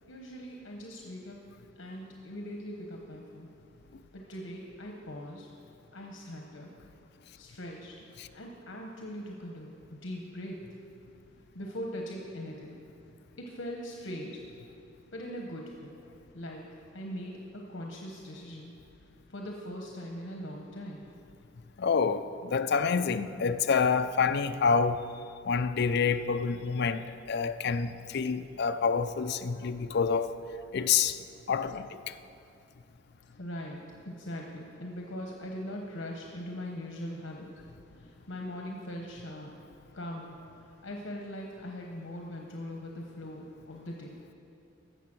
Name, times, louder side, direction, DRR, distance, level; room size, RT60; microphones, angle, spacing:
voice 1, 0.1-1.4 1.8-3.5 4.1-5.5 5.9-6.7 7.4-10.6 11.5-12.8 13.4-14.4 15.1-15.9 16.3-18.7 19.3-21.0 33.4-37.5 37.9-39.6 39.9-40.4 40.6-44.2, equal, 75° left, 1.1 m, -41 dB
voice 2, 21.8-25.0 25.4-30.3 30.7-32.1, left 5 dB, 60° left, 0.5 m, -28 dB
15.0 x 6.8 x 6.1 m
head